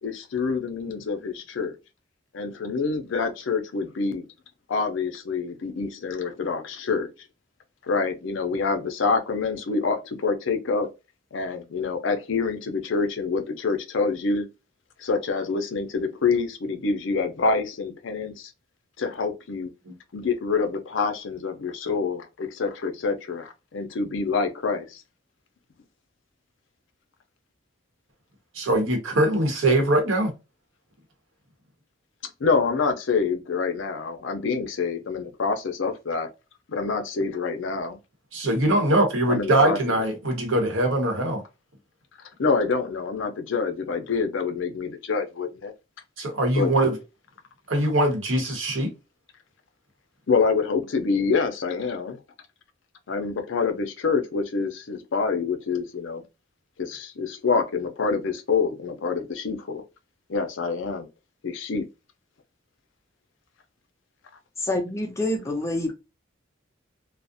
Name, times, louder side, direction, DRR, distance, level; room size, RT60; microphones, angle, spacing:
voice 1, 0.0-1.7 2.3-4.2 4.7-7.1 7.9-10.9 11.3-14.4 15.0-18.5 19.0-19.7 20.1-25.0 32.4-36.3 36.7-38.0 39.3-40.0 42.4-45.7 46.5-46.7 50.3-52.2 53.1-56.2 56.8-59.8 60.3-61.1 61.4-61.9, left 4 dB, 70° left, 0.5 m, -26 dB
voice 2, 28.5-30.3 38.3-41.4 46.2-47.0 47.7-48.9, right 1 dB, 80° right, 0.9 m, -22 dB
voice 3, 64.6-65.9, left 1 dB, 15° left, 0.5 m, -27 dB
2.4 x 2.0 x 2.5 m
head